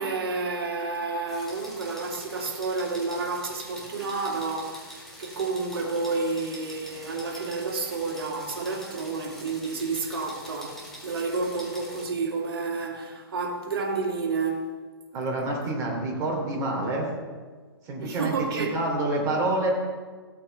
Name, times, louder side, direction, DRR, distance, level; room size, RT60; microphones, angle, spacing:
voice 1, 0.0-14.7 18.0-18.8, right 3 dB, 65° right, 2.4 m, -30 dB
sound 1, 1.3-12.0, equal, 5° left, 2.3 m, -45 dB
voice 2, 15.1-17.1 17.8-19.7, right 2 dB, 25° right, 2.8 m, -27 dB
15.0 x 8.5 x 3.4 m
hypercardioid pair, 145°, 13 cm